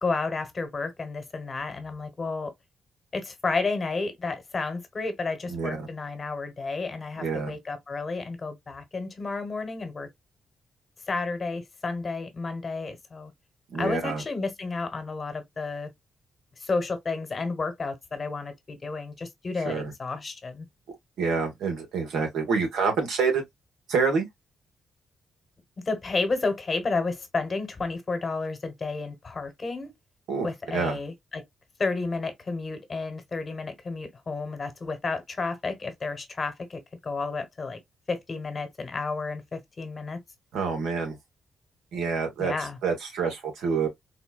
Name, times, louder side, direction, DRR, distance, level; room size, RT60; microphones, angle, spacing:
voice 1, 0.0-2.5 3.1-10.1 11.1-13.3 13.8-15.9 16.6-20.7 25.9-29.9 30.4-31.4 31.8-37.8 38.1-40.2 42.4-42.8, left 3 dB, 40° left, 1.2 m, -31 dB
voice 2, 7.2-7.5 13.7-14.2 19.6-19.8 21.2-23.4 23.9-24.3 30.3-30.5 30.7-31.0 40.5-41.1 41.9-42.5 42.8-43.9, right 5 dB, 85° right, 1.3 m, -27 dB
4.2 x 2.1 x 2.3 m
supercardioid pair, 60°, 0 cm